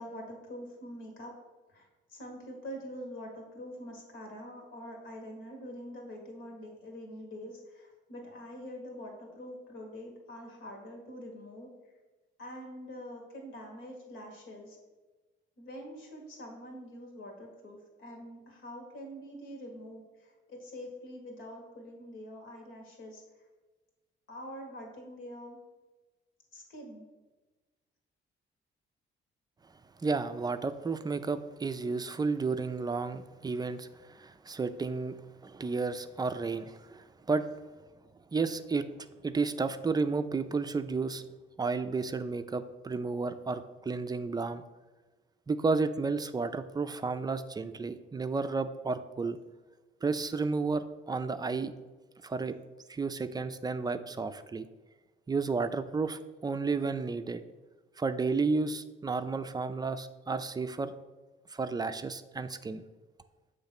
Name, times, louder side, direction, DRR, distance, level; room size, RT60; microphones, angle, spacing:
voice 1, 0.0-1.3 1.7-11.7 12.4-14.8 15.6-23.5 24.3-25.6 26.5-27.1, equal, 80° left, 1 dB, 1.8 m, -45 dB
voice 2, 30.0-35.2 35.4-37.5 38.3-38.9 39.2-41.2 41.6-44.6 45.5-49.4 50.0-51.7 52.2-52.5 52.9-54.7 55.3-57.4 58.0-60.9 61.5-62.8, right 4 dB, 20° right, 10 dB, 0.4 m, -32 dB
7.0 x 3.1 x 5.9 m, 1.2 s
cardioid pair, 90°, 20 cm